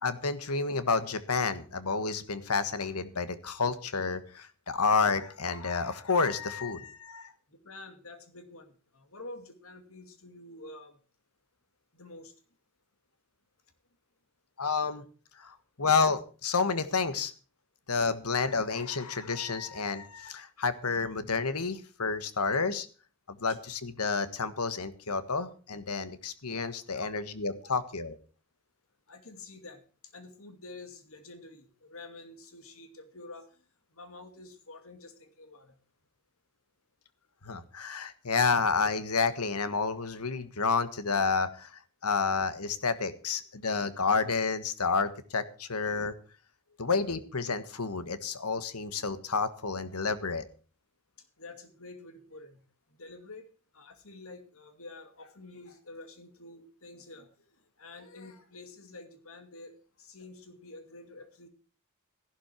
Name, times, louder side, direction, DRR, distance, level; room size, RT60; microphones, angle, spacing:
voice 1, 0.0-7.3 14.6-15.0 15.4-17.3 17.9-22.9 23.3-28.2 37.4-46.1 46.8-50.4, left 4 dB, 90° left, 13 dB, 1.6 m, -30 dB
voice 2, 7.5-11.0 11.9-12.3 26.9-27.1 27.6-27.8 29.1-29.8 30.1-33.6 33.9-35.8 46.7-46.9 51.4-52.6 52.9-53.5 53.7-61.5, left 2 dB, 70° left, 8 dB, 2.6 m, -48 dB
15.0 x 12.0 x 4.5 m, 0.37 s
head